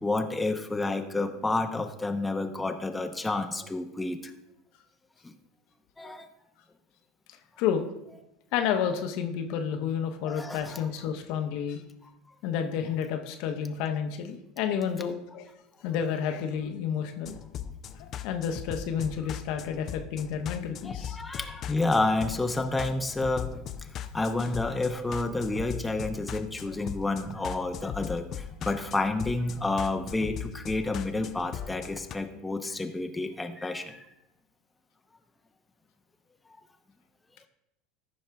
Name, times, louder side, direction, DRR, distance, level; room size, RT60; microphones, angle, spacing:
voice 1, 0.0-4.3 5.2-5.3 6.0-6.3 10.3-10.8 20.8-23.6 24.1-34.0, left 2 dB, 10° left, 5 dB, 0.9 m, -30 dB
voice 2, 8.5-11.8 12.4-15.5 15.8-17.4 18.0-21.2, left 8 dB, 65° left, 5 dB, 1.0 m, -30 dB
sound 1, 17.3-32.2, left 9 dB, 45° left, 0.6 m, -39 dB
14.5 x 5.5 x 3.5 m, 0.86 s
hypercardioid pair, 80°, 0 cm